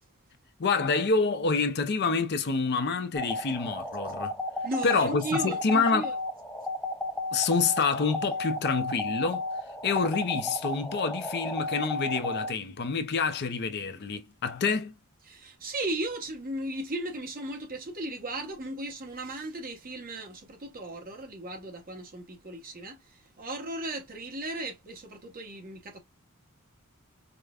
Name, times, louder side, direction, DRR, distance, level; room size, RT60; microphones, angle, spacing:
voice 1, 0.6-4.3 4.8-6.0 7.3-9.5 9.8-14.9, left 4 dB, 50° left, 0.6 m, -27 dB
sound 1, 3.2-12.5, left 2 dB, 5° left, 0.5 m, -34 dB
voice 2, 4.6-6.1 15.3-26.0, right 1 dB, 40° right, 1.1 m, -36 dB
4.8 x 2.2 x 2.4 m
head